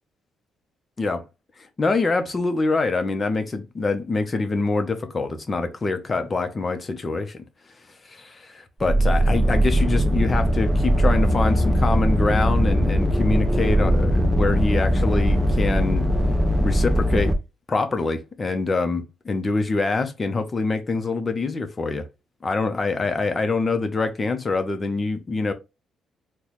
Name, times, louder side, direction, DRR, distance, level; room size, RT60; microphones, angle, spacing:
voice 1, 1.8-7.4 8.0-16.1 16.6-17.3 17.7-22.0 22.4-25.5, left 3 dB, 30° left, 0.8 m, -25 dB
sound 1, 8.8-17.3, equal, 10° right, 0.7 m, -20 dB
4.0 x 2.3 x 3.1 m
cardioid pair, 90°, 0 cm